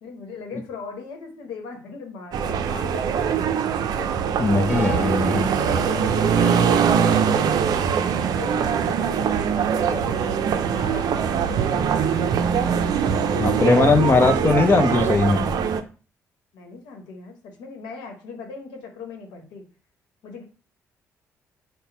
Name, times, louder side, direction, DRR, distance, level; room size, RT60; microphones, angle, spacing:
voice 1, 0.0-3.5 3.9-4.1 5.5-7.5 8.1-10.3 10.7-12.2 12.9-14.6 16.5-19.6 20.2-20.4, left 4 dB, 80° left, 3 dB, 1.0 m, -38 dB
sound 1, 2.3-15.8, right 7 dB, 65° right, 0.4 m, -22 dB
voice 2, 4.4-5.5 13.4-15.5, left 3 dB, 30° left, 6 dB, 0.6 m, -19 dB
sound 2, 4.6-14.9, right 1 dB, 20° right, 1.1 m, -38 dB
3.9 x 2.2 x 4.5 m, 0.36 s
hypercardioid pair, 50°, 7 cm